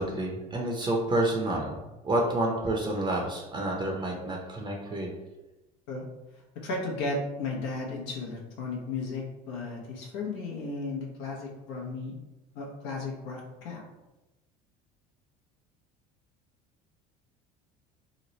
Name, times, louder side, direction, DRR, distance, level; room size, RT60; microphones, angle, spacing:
voice 1, 0.0-1.8 2.0-5.1, right 1 dB, 25° right, 0 dB, 0.6 m, -29 dB
voice 2, 6.3-12.2 12.5-13.8, left 3 dB, 80° left, -1 dB, 0.9 m, -35 dB
3.1 x 2.1 x 3.9 m, 1.0 s
supercardioid pair, 95°, 19 cm